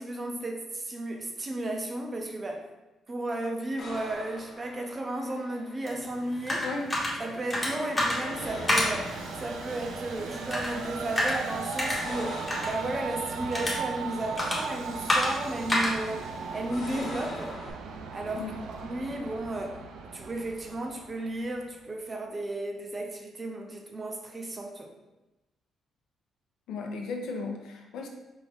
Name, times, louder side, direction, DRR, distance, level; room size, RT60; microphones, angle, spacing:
voice 1, 0.0-2.7 3.1-6.7 7.2-9.1 9.4-17.6 18.1-19.8 20.1-24.9, right 1 dB, 20° right, 3 dB, 0.5 m, -34 dB
sound 1, 3.8-17.7, left 2 dB, 55° left, 1.1 m, -45 dB
sound 2, 5.9-17.5, left 1 dB, 10° left, 0.9 m, -32 dB
voice 2, 6.6-6.9 18.4-18.6 26.7-28.1, left 3 dB, 90° left, 1 dB, 0.7 m, -35 dB
Train, 8.1-21.6, right 5 dB, 80° right, 0.4 m, -38 dB
4.8 x 2.6 x 3.4 m, 1.0 s
cardioid pair, 165°, 0 cm